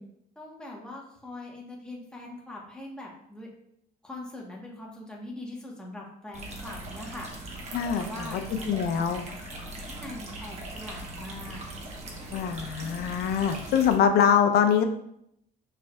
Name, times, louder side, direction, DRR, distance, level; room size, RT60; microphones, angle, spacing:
voice 1, 0.4-3.5 4.0-9.0 9.8-11.6, left 1 dB, 5° left, -2 dB, 1.0 m, -42 dB
sound 1, 6.3-14.0, right 1 dB, 40° right, 1.0 m, -40 dB
voice 2, 7.7-8.0 8.3-8.4 8.7-9.2 12.3-14.8, left 8 dB, 70° left, 7 dB, 0.5 m, -23 dB
6.1 x 3.3 x 2.3 m, 0.74 s
cardioid pair, 110°, 17 cm